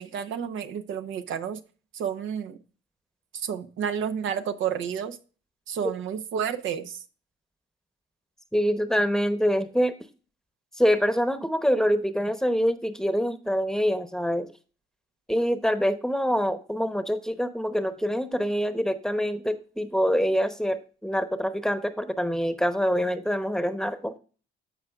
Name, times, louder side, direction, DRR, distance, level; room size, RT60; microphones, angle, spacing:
voice 1, 0.0-1.6 1.9-2.6 3.3-5.2 5.7-7.0, right 8 dB, 75° right, 0.9 m, -30 dB
voice 2, 8.5-9.9 10.8-14.5 15.3-24.1, equal, 5° left, 0.9 m, -25 dB
14.5 x 4.8 x 2.4 m
cardioid pair, 90°, 20 cm